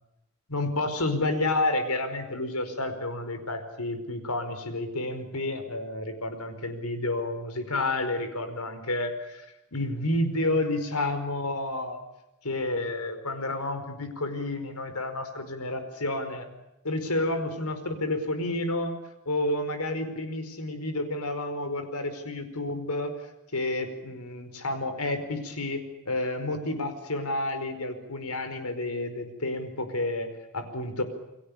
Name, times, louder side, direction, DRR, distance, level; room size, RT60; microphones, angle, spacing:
voice 1, 0.5-9.4 9.7-12.0 12.4-16.5 16.8-18.9 19.2-23.1 23.5-31.0, left 2 dB, 85° left, 9 dB, 5.0 m, -30 dB
29.5 x 22.5 x 7.0 m, 0.91 s
head